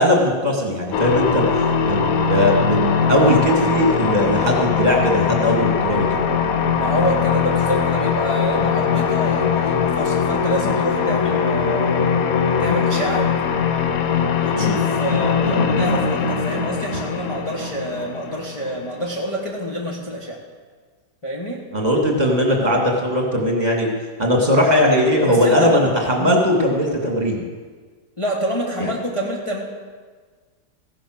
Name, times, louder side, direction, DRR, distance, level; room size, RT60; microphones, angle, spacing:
voice 1, 0.0-1.5 1.8-6.2 14.6-14.8 21.7-23.9 24.2-27.4 28.8-28.9, equal, 25° right, 0 dB, 2.3 m, -19 dB
sound 1, 0.9-19.2, left 6 dB, 60° left, 1.3 m, -21 dB
voice 2, 6.7-12.0 12.6-13.3 14.4-20.4 21.2-21.6 25.3-25.8 26.2-26.4 28.2-29.6, equal, 20° left, -2 dB, 1.5 m, -27 dB
15.5 x 11.5 x 6.3 m, 1.5 s
omnidirectional pair, 1.9 m